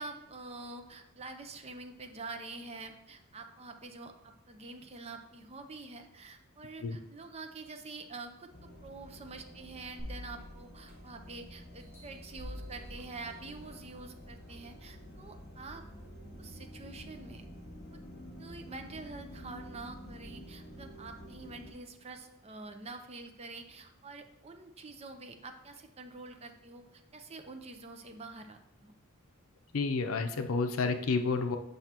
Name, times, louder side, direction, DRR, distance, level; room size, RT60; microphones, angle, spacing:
voice 1, 0.0-15.8 16.4-17.4 17.9-18.0 18.4-28.9, right 3 dB, 30° right, 6 dB, 0.6 m, -46 dB
sound 1, 8.5-21.7, equal, 50° left, 1.3 m, -49 dB
sound 2, 10.0-11.3 11.8-13.9 14.5-14.6, left 1 dB, 10° right, 2.3 m, -46 dB
voice 2, 29.7-31.6, left 4 dB, 75° left, 7 dB, 0.6 m, -30 dB
7.9 x 5.5 x 2.9 m, 0.85 s
head